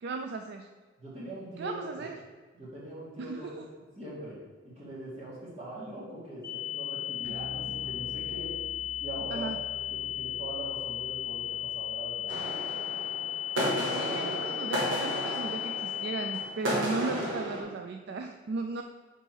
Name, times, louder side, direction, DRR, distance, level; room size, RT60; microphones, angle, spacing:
voice 1, 0.0-0.7 1.6-2.2 3.2-3.7 7.3-7.5 9.3-9.6 13.8-18.8, right 4 dB, 55° right, 5 dB, 0.3 m, -36 dB
voice 2, 1.0-2.0 2.5-3.7 4.0-4.4 4.6-8.5 9.0-9.5 9.9-12.3, right 1 dB, 35° right, -6 dB, 1.8 m, -42 dB
sound 1, 6.4-16.4, left 12 dB, 15° left, 0.9 m, -35 dB
Bass guitar, 7.2-13.7, left 1 dB, 75° left, 0.6 m, -49 dB
sound 2, 12.3-17.6, equal, 85° right, 1.6 m, -33 dB
5.5 x 4.1 x 4.5 m, 1.4 s
head